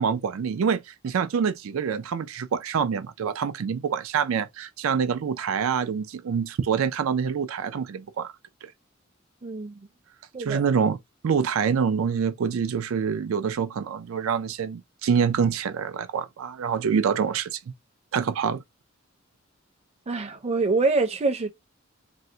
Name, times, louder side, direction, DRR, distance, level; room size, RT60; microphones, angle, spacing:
voice 1, 0.0-8.3 8.6-8.7 10.4-17.6 18.1-18.6, right 6 dB, 90° right, 0.4 m, -26 dB
voice 2, 9.4-9.8 10.3-10.6 20.1-21.5, right 3 dB, 30° right, 0.5 m, -25 dB
3.5 x 2.0 x 2.7 m
head